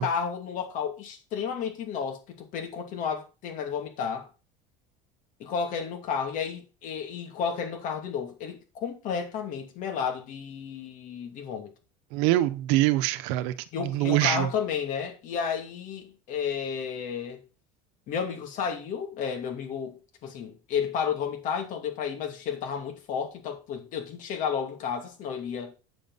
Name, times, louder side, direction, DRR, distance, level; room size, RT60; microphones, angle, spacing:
voice 1, 0.0-2.2 2.5-4.3 5.4-11.7 13.7-17.4 18.1-25.7, left 7 dB, 55° left, 2.6 m, -32 dB
voice 2, 12.1-14.5, right 16 dB, 75° right, 1.0 m, -24 dB
8.6 x 7.1 x 4.1 m
cardioid pair, 135°, 16 cm